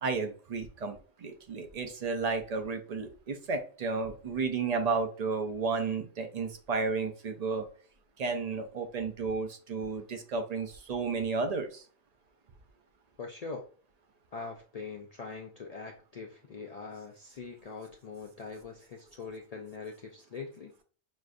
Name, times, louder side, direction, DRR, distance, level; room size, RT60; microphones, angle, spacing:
voice 1, 0.0-7.7 8.2-11.8, right 4 dB, 45° right, 6 dB, 0.6 m, -32 dB
voice 2, 13.2-13.7 14.3-20.7, left 4 dB, 70° left, 1 dB, 0.3 m, -42 dB
6.2 x 2.5 x 2.5 m, 0.42 s
omnidirectional pair, 1.2 m